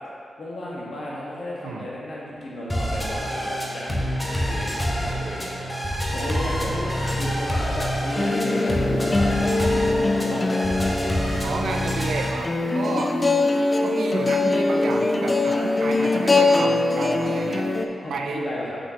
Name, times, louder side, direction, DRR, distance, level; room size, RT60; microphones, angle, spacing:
voice 1, 0.4-10.9 15.5-15.6 18.0-18.8, left 1 dB, 65° left, -6 dB, 1.4 m, -33 dB
sound 1, 2.7-12.3, equal, 15° left, 0.8 m, -27 dB
voice 2, 6.1-6.7 7.1-7.3 11.4-13.2 13.8-17.7 18.1-18.4, right 4 dB, 85° right, 2 dB, 0.4 m, -31 dB
sound 2, 8.2-17.9, left 2 dB, 30° left, 0.4 m, -22 dB
6.2 x 5.8 x 2.9 m, 2.6 s
wide cardioid pair, 110°, 0 cm